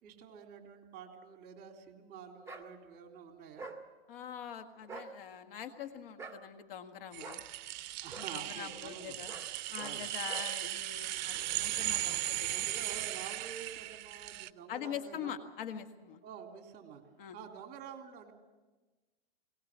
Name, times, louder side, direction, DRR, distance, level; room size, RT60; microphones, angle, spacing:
voice 1, 0.0-3.7 8.0-9.2 9.8-10.1 11.3-11.5 12.5-15.4 16.2-17.0 17.3-18.3, right 7 dB, 30° right, 3 dB, 3.5 m, -49 dB
sound 1, 2.5-2.7 3.6-3.8 4.8-5.1 6.2-6.4 7.2-7.4 8.1-8.3 9.3-9.5 9.8-10.0 10.3-10.5, right 3 dB, 10° right, 1.8 m, -45 dB
voice 2, 4.1-7.4 8.2-9.3 9.7-12.7 14.7-16.2 17.2-17.4, left 9 dB, 65° left, 6 dB, 1.8 m, -44 dB
sound 2, 7.1-14.5, right 15 dB, 50° right, 0.6 m, -37 dB
21.5 x 18.5 x 7.5 m, 1.2 s
hypercardioid pair, 125°, 30 cm